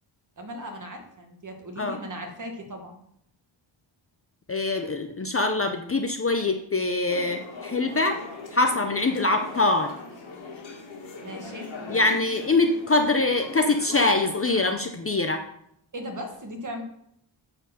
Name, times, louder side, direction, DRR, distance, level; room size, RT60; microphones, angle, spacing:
voice 1, 0.4-3.0 11.2-11.7 15.9-16.8, equal, 40° right, 3 dB, 1.6 m, -37 dB
voice 2, 4.5-8.2 8.5-9.9 11.9-15.4, left 2 dB, 30° left, 5 dB, 0.6 m, -24 dB
sound 1, 7.1-14.7, left 3 dB, 65° left, 2.1 m, -40 dB
8.9 x 4.5 x 6.7 m, 0.74 s
wide cardioid pair, 145°, 49 cm